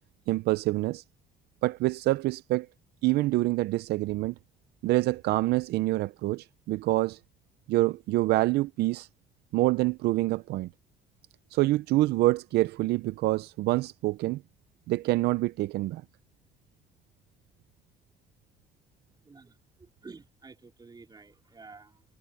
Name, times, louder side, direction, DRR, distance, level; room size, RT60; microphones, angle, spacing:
voice 1, 0.3-1.0 1.6-2.7 3.0-4.3 4.8-7.2 7.7-9.1 9.5-10.7 11.5-14.4 14.9-16.0, right 18 dB, 75° right, 0.5 m, -26 dB
voice 2, 19.2-22.0, right 4 dB, 25° right, 4.5 m, -51 dB
cardioid pair, 110°, 17 cm